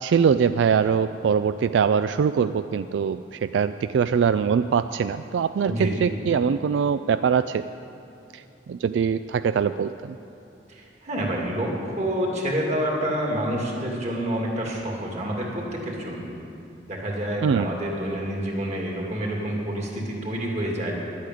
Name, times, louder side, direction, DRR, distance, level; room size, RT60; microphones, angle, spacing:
voice 1, 0.0-7.6 8.7-10.1 17.4-17.7, right 6 dB, 85° right, 12 dB, 0.3 m, -22 dB
voice 2, 5.7-6.1 10.7-16.3 16.9-21.1, equal, 40° right, -2 dB, 2.4 m, -28 dB
11.5 x 8.5 x 9.2 m, 2.8 s
head